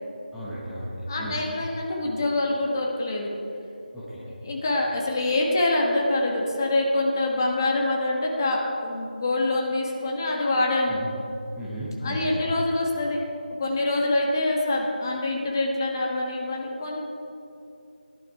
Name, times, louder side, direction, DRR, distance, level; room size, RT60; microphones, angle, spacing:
voice 1, 0.3-1.4 3.9-4.2 10.9-11.1 11.6-12.4, equal, ahead, -13 dB, 1.1 m, -34 dB
voice 2, 1.1-3.3 4.2-11.0 12.0-13.3 13.6-17.1, left 2 dB, 25° left, -1 dB, 1.2 m, -25 dB
16.5 x 11.0 x 4.6 m, 2.7 s
figure-of-eight pair, 175°, 5 cm